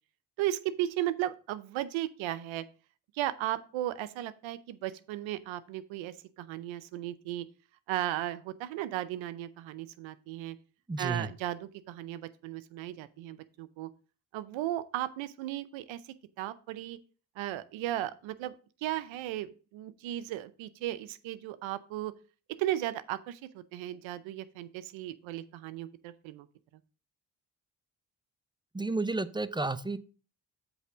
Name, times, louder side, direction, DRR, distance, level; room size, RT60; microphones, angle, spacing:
voice 1, 0.4-2.6 3.1-7.5 7.9-10.6 11.0-13.9 14.3-17.0 17.4-18.5 18.8-22.1 22.6-26.5, right 13 dB, 85° right, 15 dB, 0.6 m, -35 dB
voice 2, 10.9-11.3 28.7-30.0, right 3 dB, 10° right, 14 dB, 0.6 m, -31 dB
8.1 x 3.4 x 6.1 m, 0.37 s
supercardioid pair, 50°, 46 cm